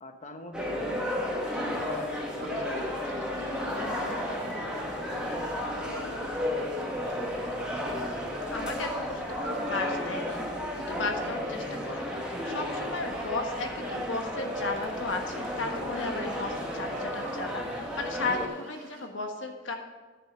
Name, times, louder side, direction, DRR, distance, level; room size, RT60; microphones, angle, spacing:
voice 1, 0.0-3.0 3.6-6.7, left 1 dB, 40° left, 6 dB, 1.0 m, -45 dB
sound 1, 0.5-18.5, left 1 dB, 5° right, 1.4 m, -33 dB
sound 2, 1.5-19.1, right 2 dB, 75° right, 2.1 m, -48 dB
voice 2, 8.5-19.8, left 3 dB, 90° left, 4 dB, 1.5 m, -35 dB
10.0 x 6.9 x 6.2 m, 1.3 s
head